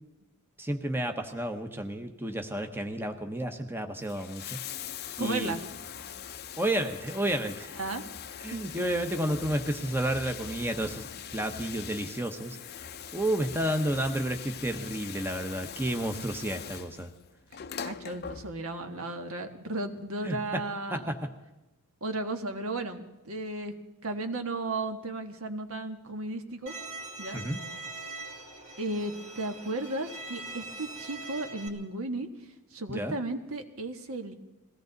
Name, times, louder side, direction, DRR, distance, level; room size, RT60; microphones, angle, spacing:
voice 1, 0.6-4.6 5.2-5.5 6.6-7.8 8.4-12.6 13.1-17.1 20.2-20.4 20.9-21.2 27.3-27.6 32.9-33.2, right 1 dB, 10° right, 6 dB, 0.9 m, -31 dB
Bathtub (filling or washing), 3.9-18.9 20.0-20.1, left 8 dB, 45° left, 0.6 m, -42 dB
voice 2, 5.2-5.6 7.8-8.0 8.5-8.8 17.8-21.2 22.0-23.7 24.0-26.7 27.2-27.4 28.8-32.3 32.7-34.3, right 2 dB, 70° right, 6 dB, 1.4 m, -34 dB
Bowed string instrument, 26.7-31.7, right 2 dB, 30° right, 2.2 m, -42 dB
21.5 x 16.5 x 4.0 m, 1.0 s
head